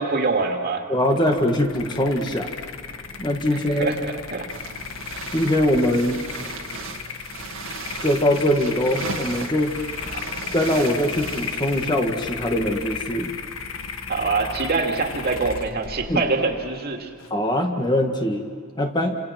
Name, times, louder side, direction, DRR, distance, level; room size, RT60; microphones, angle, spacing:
voice 1, 0.0-0.8 3.7-4.5 14.1-17.1, right 4 dB, 50° right, 2 dB, 2.5 m, -24 dB
voice 2, 0.9-2.5 3.2-4.0 5.3-6.2 8.0-9.8 10.5-13.3 16.1-16.2 17.3-18.4 18.8-19.2, left 1 dB, 20° left, 3 dB, 1.9 m, -22 dB
sound 1, 1.0-17.3, left 5 dB, 75° left, 1.5 m, -35 dB
sound 2, 4.5-12.3, right 4 dB, 75° right, 2.2 m, -36 dB
29.0 x 26.5 x 6.0 m, 2.2 s
head